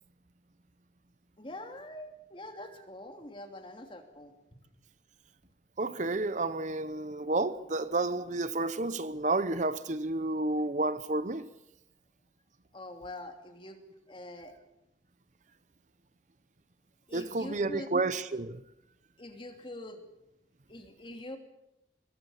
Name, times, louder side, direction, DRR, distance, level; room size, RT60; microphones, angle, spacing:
voice 1, 1.4-4.3 12.7-13.8 14.1-14.5 17.1-17.9 19.2-20.0 20.7-21.4, left 1 dB, 30° left, 2.9 m, -44 dB
voice 2, 5.8-11.5 17.1-18.6, right 2 dB, 45° right, 0.8 m, -31 dB
23.0 x 21.0 x 7.2 m
head